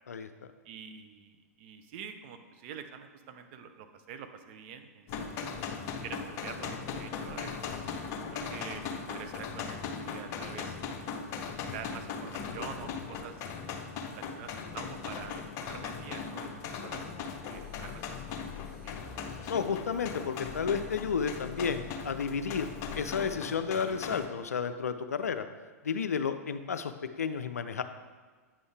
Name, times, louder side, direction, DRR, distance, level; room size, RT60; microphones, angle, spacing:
voice 1, 0.6-5.6 5.8-7.6 8.3-10.8 11.5-13.4 14.1-19.0, right 7 dB, 45° right, 7 dB, 0.7 m, -46 dB
sound 1, 5.1-24.3, left 5 dB, 35° left, 0.7 m, -39 dB
sound 2, 17.5-23.4, left 7 dB, 10° right, 2.1 m, -49 dB
voice 2, 19.5-22.7 22.9-25.5 25.8-26.9 27.2-27.8, left 6 dB, 75° left, 9 dB, 0.4 m, -32 dB
8.6 x 5.4 x 3.4 m, 1.4 s
figure-of-eight pair, 100°, 8 cm